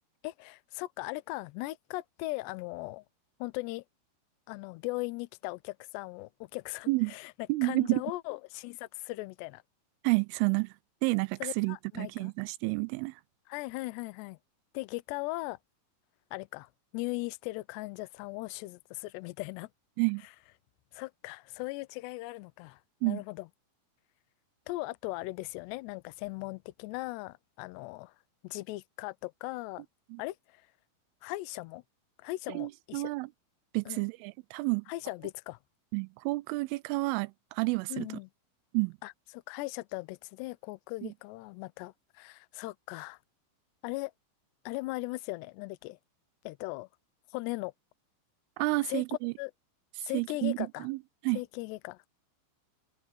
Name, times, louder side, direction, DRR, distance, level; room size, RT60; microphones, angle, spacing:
voice 1, 0.2-3.0 3.4-3.8 4.5-7.3 7.6-9.6 11.4-12.3 13.5-14.4 14.7-15.6 16.3-19.7 20.2-20.3 20.9-23.5 24.7-28.1 28.4-29.8 30.2-30.6 31.2-31.8 32.2-33.1 33.9-34.0 34.9-35.6 37.9-38.3 39.0-43.2 43.8-44.1 44.7-46.0 46.4-46.9 47.3-47.7 48.9-49.0 49.4-49.5 50.0-50.9 51.3-52.0, left 21 dB, 85° left, 2.4 m, -38 dB
voice 2, 7.5-8.0 10.0-10.7 11.0-13.1 20.0-20.2 23.0-23.2 30.1-30.2 32.5-33.3 33.7-34.8 35.9-38.1 38.7-38.9 41.0-41.1 48.6-49.3 50.1-50.6 50.8-51.0 51.2-51.4, right 25 dB, 85° right, 3.1 m, -30 dB
omnidirectional pair, 5.8 m